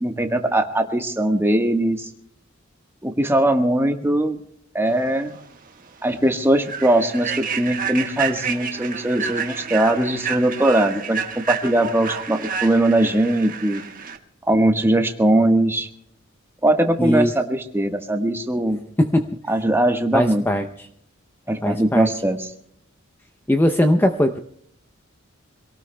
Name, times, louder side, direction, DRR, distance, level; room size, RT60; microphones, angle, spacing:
voice 1, 0.0-2.1 3.0-4.4 4.7-5.4 6.0-13.8 14.5-15.9 16.6-18.8 19.5-20.4 21.5-22.5, right 1 dB, 10° right, 5 dB, 1.3 m, -20 dB
Human voice / Train, 5.3-5.4 5.9-6.1 6.6-14.2, right 6 dB, 45° right, 1.5 m, -30 dB
voice 2, 17.0-17.3 19.0-19.3 20.1-20.9 21.6-22.1 23.5-24.4, equal, 10° left, 6 dB, 0.6 m, -19 dB
25.5 x 18.0 x 2.2 m, 0.70 s
head